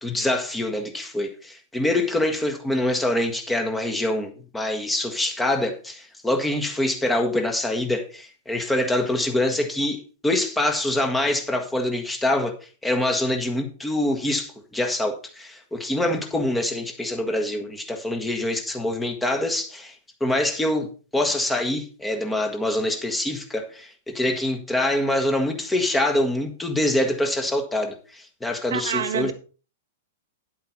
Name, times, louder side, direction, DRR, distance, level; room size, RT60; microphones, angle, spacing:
voice 1, 0.0-12.5 12.8-19.9 20.2-29.3, left 1 dB, 10° left, 1.6 m, -25 dB
voice 2, 28.7-29.3, right 8 dB, 60° right, 0.7 m, -27 dB
9.7 x 8.4 x 4.1 m
figure-of-eight pair, 100°, 0 cm